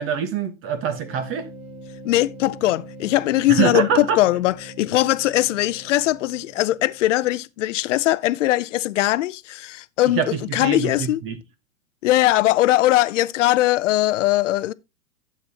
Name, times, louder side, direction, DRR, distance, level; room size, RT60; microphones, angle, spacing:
voice 1, 0.0-1.5 3.5-4.2 10.2-11.4, right 7 dB, 30° right, 1.3 m, -24 dB
sound 1, 0.7-7.4, right 1 dB, 80° right, 6.7 m, -42 dB
voice 2, 2.0-11.2 12.0-14.7, left 15 dB, 60° left, 0.7 m, -20 dB
12.0 x 8.0 x 2.9 m
hypercardioid pair, 115°, 42 cm